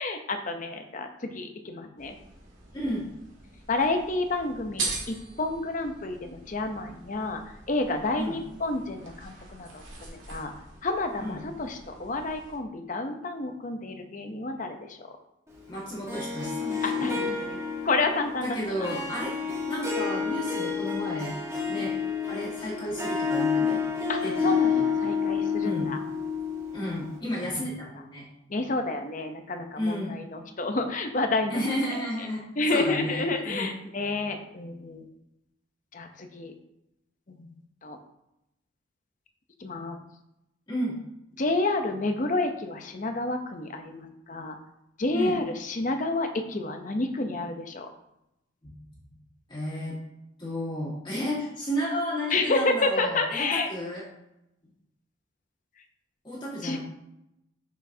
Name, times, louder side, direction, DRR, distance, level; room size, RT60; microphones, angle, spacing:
voice 1, 0.0-2.1 3.7-7.4 7.7-10.5 10.8-15.0 16.8-18.9 21.8-21.9 24.1-26.0 28.5-31.6 31.9-32.0 32.6-35.0 35.9-36.5 37.3-37.5 37.8-38.0 39.6-40.0 41.4-44.6 45.0-47.9 52.3-53.7 56.6-56.8, left 2 dB, 40° left, 6 dB, 0.7 m, -30 dB
sound 1, 2.0-12.6, right 3 dB, 80° right, 2.0 m, -41 dB
voice 2, 2.7-3.1 8.2-8.4 11.2-11.4 15.7-17.1 18.4-19.4 19.7-21.3 21.7-21.9 22.3-23.8 24.2-25.0 25.6-25.9 26.7-28.2 29.8-30.2 31.5-32.4 32.7-33.7 40.7-41.0 45.1-45.4 49.5-50.0 50.4-54.0 56.2-56.8, equal, 20° left, -7 dB, 1.8 m, -32 dB
Harp, 16.1-27.2, left 6 dB, 15° right, 1.1 m, -29 dB
6.2 x 6.1 x 2.8 m, 0.87 s
head